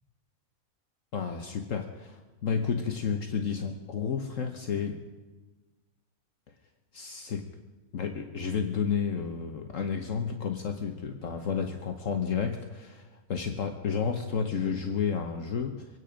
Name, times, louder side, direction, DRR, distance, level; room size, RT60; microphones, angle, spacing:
voice 1, 1.1-5.0 6.9-7.5 7.9-15.9, left 6 dB, 65° left, 4 dB, 1.3 m, -31 dB
24.5 x 9.7 x 5.1 m, 1.3 s
omnidirectional pair, 1.5 m